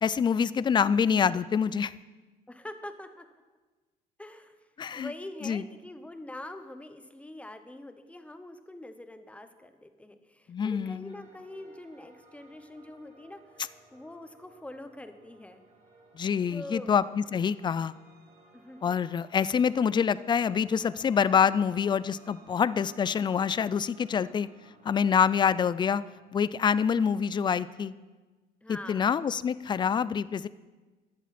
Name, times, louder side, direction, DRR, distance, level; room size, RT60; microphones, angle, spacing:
voice 1, 0.0-1.9 4.8-5.1 5.4-5.6 10.5-11.2 16.1-17.9 18.8-24.5 24.8-26.0 26.3-27.9 28.7-30.5, left 7 dB, 25° left, 18 dB, 0.4 m, -26 dB
voice 2, 2.5-3.3 4.2-4.6 4.9-15.6 16.5-17.0 18.5-19.0 28.6-29.1, left 1 dB, 5° left, 9 dB, 1.0 m, -44 dB
sound 1, 11.0-26.1, right 3 dB, 45° right, 4.2 m, -58 dB
14.5 x 10.5 x 4.3 m, 1.3 s
cardioid pair, 110°, 17 cm